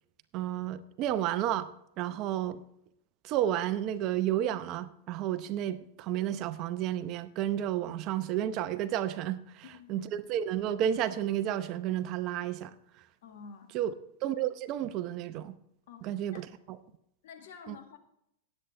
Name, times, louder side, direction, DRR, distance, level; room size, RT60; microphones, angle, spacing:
voice 1, 0.3-1.7 2.0-2.6 3.2-12.7 13.7-13.9 14.2-15.6 16.0-16.8 17.7-17.8, right 11 dB, 45° right, 0.7 m, -31 dB
voice 2, 9.7-10.1 13.2-13.7 15.9-16.4 17.2-18.0, left 6 dB, 70° left, 1.9 m, -49 dB
18.0 x 8.4 x 3.3 m
hypercardioid pair, 120°, 0 cm